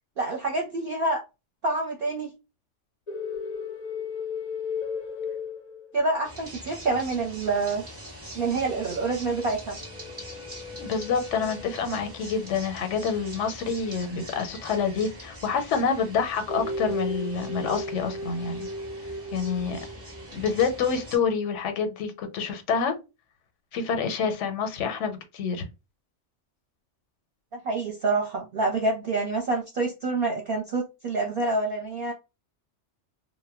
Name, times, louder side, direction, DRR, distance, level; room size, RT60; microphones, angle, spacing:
voice 1, 0.2-1.2 1.6-2.3 5.9-7.8 8.3-9.8 27.5-32.1, right 3 dB, 55° right, 0.7 m, -27 dB
sound 1, 3.1-6.3 9.8-12.4 16.5-20.3, left 3 dB, 50° left, 0.5 m, -35 dB
sound 2, 6.2-21.2, equal, 15° right, 0.6 m, -43 dB
voice 2, 10.8-18.7 19.3-19.8 20.3-22.9 23.7-25.6, left 6 dB, 85° left, 0.9 m, -27 dB
2.1 x 2.1 x 3.4 m
omnidirectional pair, 1.2 m